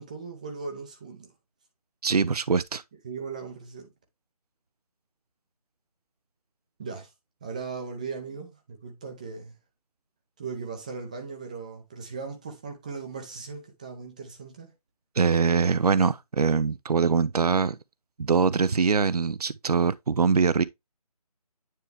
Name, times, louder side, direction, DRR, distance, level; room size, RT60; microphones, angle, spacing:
voice 1, 0.0-1.3 3.0-3.9 6.8-7.1 7.4-9.6 10.4-14.7, right 5 dB, 10° right, 0.6 m, -38 dB
voice 2, 2.0-2.8 15.2-17.8 18.2-20.6, right 5 dB, 75° right, 0.5 m, -23 dB
9.3 x 3.3 x 3.3 m
figure-of-eight pair, 155°, 20 cm